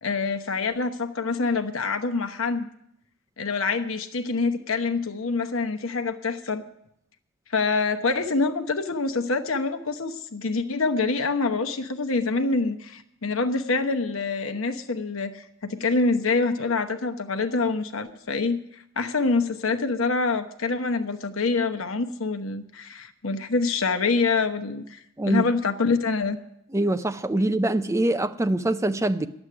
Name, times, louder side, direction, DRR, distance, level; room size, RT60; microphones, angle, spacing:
voice 1, 0.0-2.7 3.4-6.6 7.5-18.6 19.0-25.0 25.3-26.4, left 3 dB, 65° left, 1.0 m, -26 dB
voice 2, 26.7-29.3, right 1 dB, 15° right, 0.5 m, -24 dB
11.0 x 8.0 x 9.8 m
head